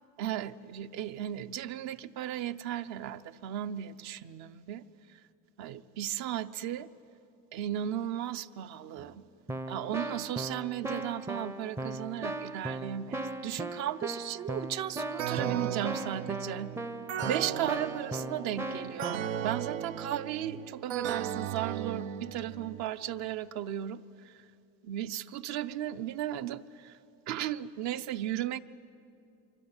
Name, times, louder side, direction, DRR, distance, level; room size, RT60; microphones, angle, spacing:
voice 1, 0.2-4.8 5.6-6.9 7.5-9.2 9.7-16.7 17.2-24.3 24.8-27.0 27.3-28.6, right 11 dB, 50° right, 0.9 m, -35 dB
Keyboard (musical), 9.0-9.1 9.5-19.2, right 2 dB, 10° right, 0.6 m, -38 dB
sound 1, 15.2-22.8, right 9 dB, 85° right, 1.1 m, -36 dB
25.0 x 24.5 x 9.0 m
supercardioid pair, 140°, 34 cm